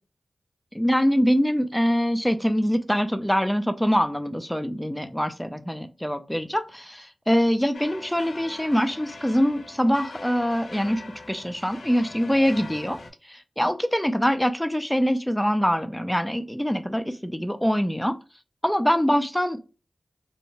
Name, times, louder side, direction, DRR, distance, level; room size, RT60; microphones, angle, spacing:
voice 1, 0.7-11.0 11.3-13.0 13.3-18.2 18.6-19.6, equal, 5° left, 8 dB, 0.4 m, -24 dB
sound 1, 7.7-13.1, left 3 dB, 75° left, 0.4 m, -42 dB
2.7 x 2.1 x 2.8 m, 0.33 s
wide cardioid pair, 60°, 0 cm